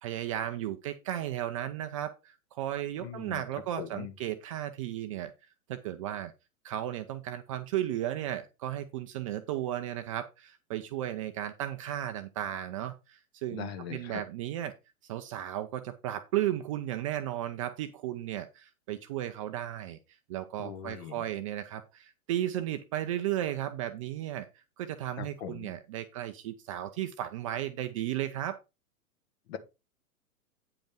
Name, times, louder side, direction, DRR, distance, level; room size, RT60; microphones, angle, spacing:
voice 1, 0.0-5.3 5.7-6.3 6.6-14.7 15.0-20.0 20.3-28.6, right 12 dB, 25° right, 0.5 m, -35 dB
voice 2, 3.0-3.4 3.8-4.1 13.5-14.2 20.6-21.3 25.2-25.7 29.5-29.6, left 9 dB, 45° left, 1.8 m, -41 dB
9.4 x 5.2 x 4.8 m
figure-of-eight pair, 105°, 44 cm